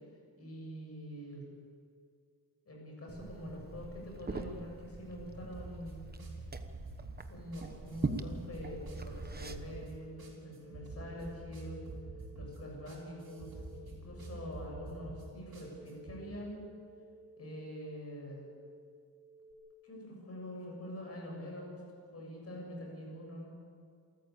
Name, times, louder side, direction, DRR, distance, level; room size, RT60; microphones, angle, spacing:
voice 1, 0.4-1.5 2.7-6.1 7.3-11.8 12.3-16.6 17.4-18.5 19.8-21.8 22.1-23.5, equal, 35° left, -1 dB, 7.6 m, -45 dB
Liquid, 3.1-9.9, right 3 dB, 25° right, 1.0 m, -42 dB
sound 1, 5.5-16.2, right 2 dB, 65° right, 4.9 m, -47 dB
sound 2, 10.1-19.5, equal, 60° left, 3.7 m, -57 dB
28.0 x 14.5 x 8.5 m, 2.1 s
wide cardioid pair, 175°, 39 cm